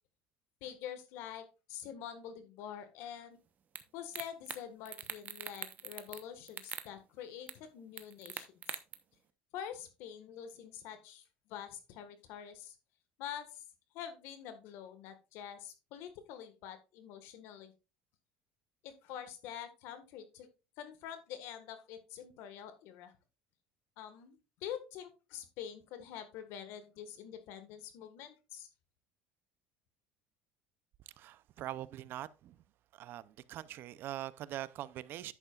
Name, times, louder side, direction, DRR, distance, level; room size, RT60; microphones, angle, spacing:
voice 1, 0.6-3.4 3.9-8.8 9.5-12.8 13.2-13.6 13.9-17.7 18.8-20.5 20.8-23.1 24.0-28.7, left 9 dB, 70° left, 1.6 m, -46 dB
sound 1, 3.8-3.9 4.1-4.6 4.9-6.2 6.5-6.9 7.5-7.6 8.0-8.9, right 8 dB, 40° right, 0.9 m, -42 dB
voice 2, 31.2-32.6 32.9-35.3, right 13 dB, 55° right, 0.5 m, -43 dB
10.5 x 8.1 x 2.4 m
supercardioid pair, 115°, 4 cm